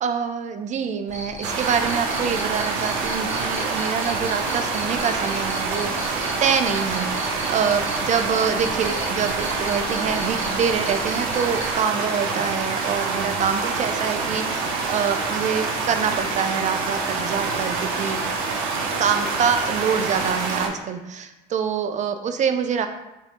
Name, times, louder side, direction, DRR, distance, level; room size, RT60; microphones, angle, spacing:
voice 1, 0.0-18.2 19.0-22.9, right 7 dB, 35° right, 8 dB, 0.5 m, -25 dB
Cricket, 1.1-11.7, equal, 10° right, 1.0 m, -37 dB
sound 1, 1.4-20.7, right 4 dB, 70° right, 0.8 m, -26 dB
4.8 x 3.3 x 3.0 m, 0.97 s
hypercardioid pair, 70°, 21 cm